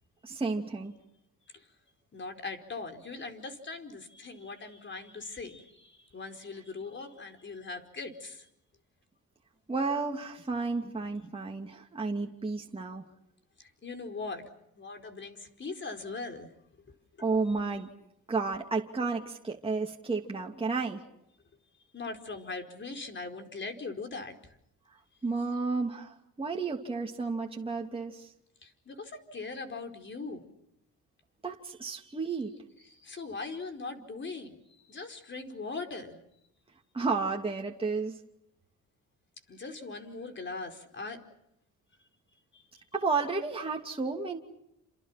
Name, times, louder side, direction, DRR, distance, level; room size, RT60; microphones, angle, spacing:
voice 1, 0.2-0.9 9.7-13.1 17.2-17.9 18.3-21.0 25.2-28.3 31.4-32.5 36.9-38.2 42.9-44.4, right 4 dB, 20° right, 0 dB, 2.8 m, -32 dB
voice 2, 2.1-8.5 13.6-14.5 14.8-16.5 16.9-17.0 21.9-24.5 28.6-30.4 32.9-34.6 34.9-36.2 39.5-41.2 42.5-42.6, left 3 dB, 40° left, 6 dB, 4.7 m, -40 dB
29.5 x 27.5 x 6.0 m, 0.80 s
cardioid pair, 90°, 30 cm